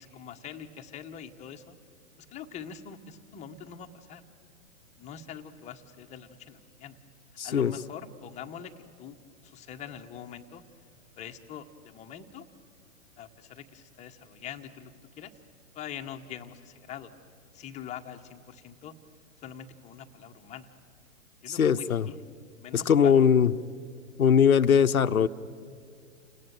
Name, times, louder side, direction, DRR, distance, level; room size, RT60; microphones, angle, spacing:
voice 1, 0.0-1.8 2.3-4.2 5.0-7.0 7.4-9.2 9.4-10.6 11.2-12.5 13.2-15.3 15.7-17.1 17.5-18.9 19.4-20.7 21.4-22.1 22.6-23.2, left 8 dB, 15° left, 5 dB, 1.1 m, -43 dB
voice 2, 7.4-7.7 21.5-22.1 22.7-23.5 24.2-25.3, left 7 dB, 75° left, 13 dB, 0.9 m, -21 dB
29.0 x 18.5 x 9.2 m, 2.2 s
figure-of-eight pair, 115°, 42 cm